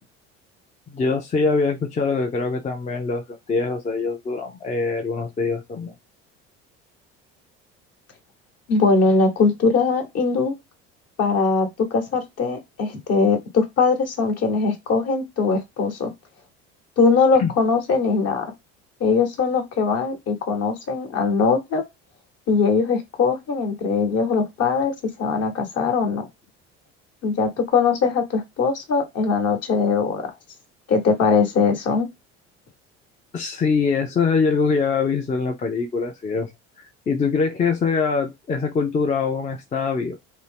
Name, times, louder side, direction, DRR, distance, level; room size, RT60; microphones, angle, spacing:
voice 1, 0.9-5.9 17.4-17.5 33.3-36.5 37.1-40.2, left 4 dB, 25° left, 0.5 m, -23 dB
voice 2, 8.7-10.5 11.2-16.1 17.0-18.4 19.0-21.8 22.5-26.3 27.2-30.3 30.9-32.1, left 4 dB, 50° left, 1.1 m, -21 dB
2.6 x 2.0 x 3.3 m
supercardioid pair, 80°, 31 cm